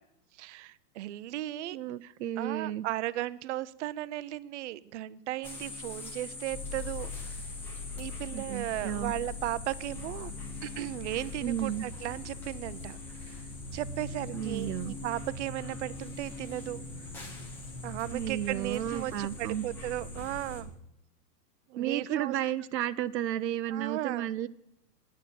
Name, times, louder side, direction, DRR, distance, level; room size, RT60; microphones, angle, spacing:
voice 1, 0.3-7.4 8.0-10.3 10.6-16.8 17.8-20.7 21.7-22.3 23.7-24.3, right 15 dB, 45° right, 18 dB, 0.6 m, -36 dB
voice 2, 1.7-2.8 8.3-9.1 11.4-11.8 14.3-15.0 18.1-19.6 21.8-24.5, right 11 dB, 85° right, 13 dB, 0.7 m, -33 dB
sound 1, 5.4-20.6, left 2 dB, 5° left, 0.4 m, -44 dB
sound 2, 6.5-20.7, left 3 dB, 40° left, 1.7 m, -43 dB
10.0 x 9.4 x 8.3 m, 0.83 s
hypercardioid pair, 140°, 49 cm